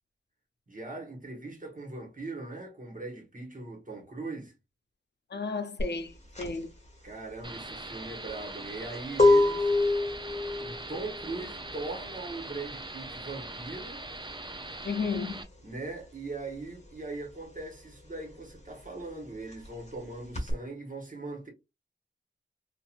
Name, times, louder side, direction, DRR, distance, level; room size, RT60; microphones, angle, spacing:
voice 1, 0.7-4.5 7.0-9.8 10.6-14.0 15.6-21.5, right 3 dB, 45° right, 1.3 m, -40 dB
voice 2, 5.3-6.7 14.8-15.4, left 4 dB, 65° left, 0.5 m, -33 dB
sound 1, 5.8-16.0 16.3-20.5, left 2 dB, 35° left, 1.1 m, -28 dB
sound 2, 7.4-15.4, right 2 dB, 25° right, 0.5 m, -41 dB
3.0 x 2.5 x 2.4 m
wide cardioid pair, 60°, 19 cm